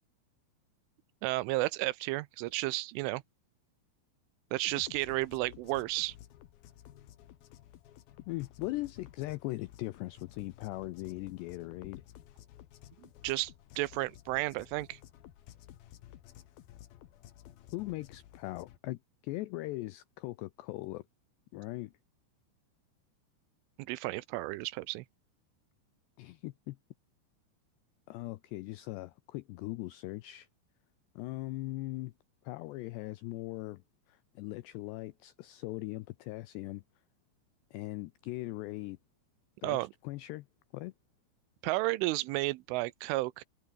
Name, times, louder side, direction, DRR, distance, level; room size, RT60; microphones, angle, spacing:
voice 1, 1.2-3.2 4.5-6.2 13.2-13.5 13.8-15.0 23.8-25.0 39.6-39.9 41.6-43.4, right 20 dB, 80° right, 3.1 m, -32 dB
sound 1, 4.6-18.8, left 12 dB, 60° left, 2.8 m, -54 dB
voice 2, 8.3-12.0 17.7-21.0 21.5-21.9 26.2-26.8 28.1-30.5 31.2-32.1 32.4-33.8 34.1-36.8 37.7-39.0 39.6-40.5 40.7-40.9, left 19 dB, 90° left, 2.4 m, -40 dB
open air
omnidirectional pair, 5.7 m